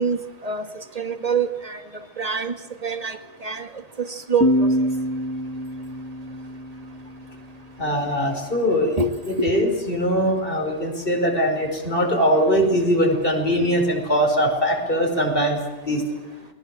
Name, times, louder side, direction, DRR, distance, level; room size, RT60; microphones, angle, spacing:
voice 1, 0.0-1.8 2.2-3.7 4.0-4.7 9.0-9.1 9.4-9.5, right 4 dB, 35° right, 8 dB, 1.8 m, -26 dB
sound 1, 4.4-7.8, equal, 15° left, 1.8 m, -25 dB
voice 2, 7.8-9.0 9.3-15.6 15.9-16.0, equal, 50° left, 2 dB, 5.5 m, -21 dB
29.0 x 21.0 x 7.6 m, 1.2 s
omnidirectional pair, 1.2 m